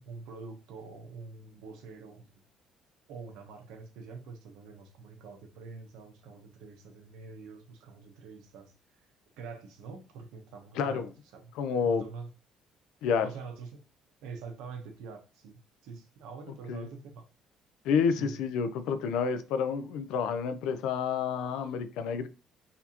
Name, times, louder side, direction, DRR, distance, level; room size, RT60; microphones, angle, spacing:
voice 1, 0.0-2.4 3.1-8.7 9.4-11.1 11.3-11.5 11.8-12.3 13.2-13.9 14.2-17.2 18.2-18.4, right 4 dB, 90° right, 0.9 m, -45 dB
voice 2, 10.8-11.1 11.6-12.0 13.0-13.3 16.7-16.9 17.8-22.3, left 6 dB, 85° left, 0.5 m, -29 dB
4.1 x 2.6 x 2.8 m
cardioid pair, 150°, 0 cm